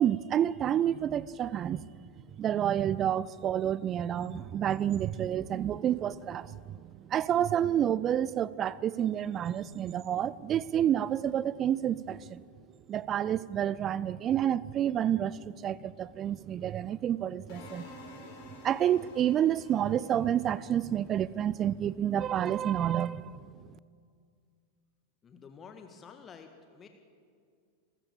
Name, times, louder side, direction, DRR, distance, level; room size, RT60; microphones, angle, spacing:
voice 1, 0.0-1.9 2.3-12.4 12.9-17.8 18.6-23.5, right 10 dB, 30° right, 21 dB, 0.5 m, -29 dB
sound 1, 17.5-21.6, left 2 dB, 50° left, 6.2 m, -50 dB
voice 2, 25.2-26.9, left 6 dB, 25° left, 6 dB, 1.6 m, -50 dB
29.5 x 14.0 x 7.1 m, 2.2 s
figure-of-eight pair, 90°, 0 cm